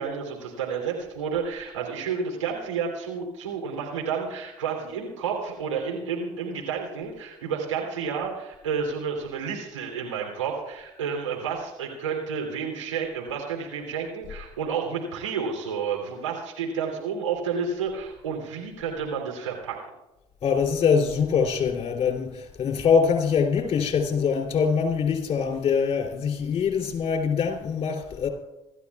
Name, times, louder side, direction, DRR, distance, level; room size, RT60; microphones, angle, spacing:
voice 1, 0.0-19.8, right 6 dB, 85° right, 3.2 m, -30 dB
voice 2, 20.4-28.3, left 6 dB, 40° left, 3.2 m, -23 dB
26.0 x 13.5 x 2.4 m
hypercardioid pair, 55°, 15 cm